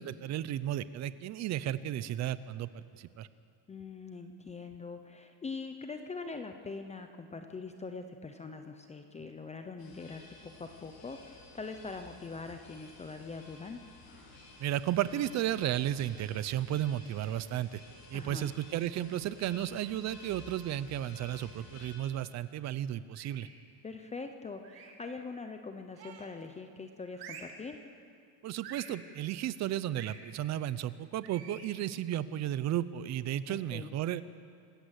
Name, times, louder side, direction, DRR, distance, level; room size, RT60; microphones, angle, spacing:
voice 1, 0.0-3.3 14.6-17.8 18.1-23.5 28.4-34.2, right 12 dB, 40° right, 15 dB, 0.6 m, -34 dB
voice 2, 3.7-13.8 18.1-18.5 23.8-27.8 33.5-33.9, left 4 dB, 15° left, 6 dB, 0.6 m, -43 dB
sound 1, 9.8-21.9, left 3 dB, 65° left, 6.9 m, -54 dB
sound 2, 23.1-23.6 24.6-25.1 25.9-26.4 27.1-27.6 28.6-29.0 29.9-30.2 31.2-31.7, right 7 dB, 55° right, 2.5 m, -48 dB
26.5 x 14.0 x 8.2 m, 2.3 s
cardioid pair, 175°, 45 cm